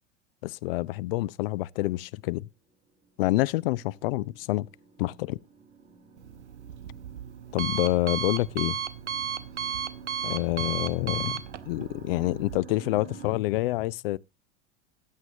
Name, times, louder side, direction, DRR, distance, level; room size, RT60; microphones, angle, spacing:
voice 1, 0.4-2.5 3.2-4.7 5.0-5.4 7.5-8.8 10.2-11.4 11.7-14.2, left 18 dB, 55° left, 0.5 m, -27 dB
sound 1, 3.0-13.3, right 5 dB, 25° right, 3.5 m, -49 dB
Alarm, 6.2-12.6, right 8 dB, 75° right, 0.8 m, -35 dB
15.0 x 9.1 x 2.7 m
figure-of-eight pair, 85°, 35 cm